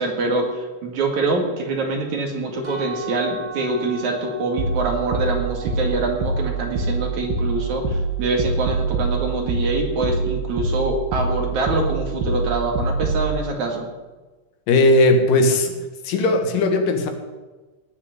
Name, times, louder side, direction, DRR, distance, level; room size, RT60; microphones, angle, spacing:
voice 1, 0.0-13.9, right 2 dB, 60° right, 2 dB, 3.1 m, -25 dB
sound 1, 2.6-8.5, right 4 dB, 40° right, 3.8 m, -39 dB
sound 2, 4.6-13.3, right 3 dB, 75° right, 3.3 m, -24 dB
voice 2, 14.7-15.7 16.0-17.1, left 2 dB, 70° left, 6 dB, 3.0 m, -17 dB
18.0 x 6.6 x 9.2 m, 1.2 s
omnidirectional pair, 4.2 m